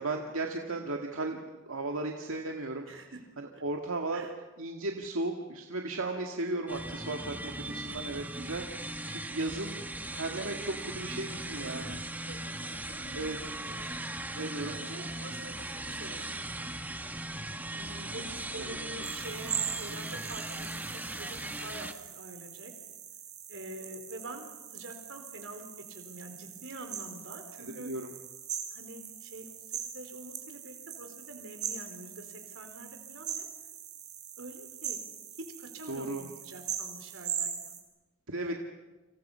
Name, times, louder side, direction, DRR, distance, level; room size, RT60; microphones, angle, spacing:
voice 1, 0.0-1.4 1.6-2.9 3.6-4.3 4.6-9.8 10.1-11.9 13.1-13.4 14.3-14.7 18.6-18.8 27.6-28.1 35.9-36.2 38.3-38.5, right 2 dB, 85° right, 2 dB, 2.0 m, -35 dB
voice 2, 2.9-3.2 4.1-4.3 7.7-8.2 11.5-13.9 14.6-16.7 17.7-21.9 22.1-22.7 23.5-25.6 25.9-27.9 28.7-29.5 29.8-33.5 34.4-35.0 35.6-37.8 38.4-38.5, right 1 dB, 65° right, 5 dB, 4.2 m, -46 dB
sound 1, 6.7-21.9, right 1 dB, 10° right, 1.2 m, -39 dB
sound 2, 19.0-37.8, right 8 dB, 35° right, 4.6 m, -41 dB
30.0 x 27.0 x 5.7 m, 1.2 s
head